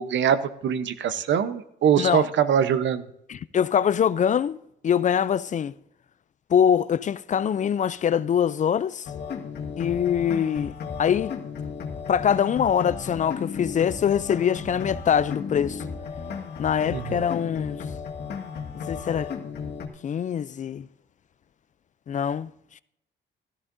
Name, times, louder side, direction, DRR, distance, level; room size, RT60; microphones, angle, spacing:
voice 1, 0.0-3.0 16.9-17.3, right 8 dB, 70° right, 0.8 m, -23 dB
voice 2, 2.0-2.3 3.3-4.6 4.8-5.7 6.5-9.1 9.8-10.7 11.0-11.3 12.1-15.8 16.6-17.8 18.9-19.3 20.0-20.9 22.1-22.5, left 8 dB, 40° left, 0.4 m, -23 dB
sound 1, 9.0-19.9, left 6 dB, 55° left, 1.9 m, -34 dB
13.5 x 13.0 x 2.6 m
cardioid pair, 90°, 20 cm